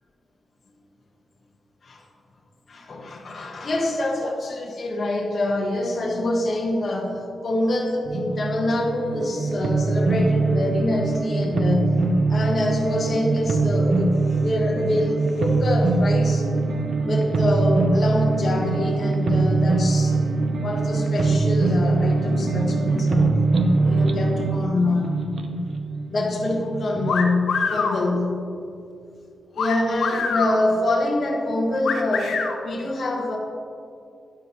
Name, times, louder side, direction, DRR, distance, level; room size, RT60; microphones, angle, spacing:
voice 1, 2.7-12.0 12.3-16.4 17.1-20.2 20.6-23.4 23.8-25.4 26.1-28.4 29.5-33.4, left 2 dB, 40° left, -2 dB, 1.3 m, -25 dB
sound 1, 8.0-27.2, right 3 dB, 50° right, 0.7 m, -22 dB
sound 2, 27.1-28.0 29.6-30.6 31.8-32.6, left 5 dB, 90° left, 0.9 m, -24 dB
12.5 x 10.0 x 3.0 m, 2.4 s
wide cardioid pair, 170°, 0 cm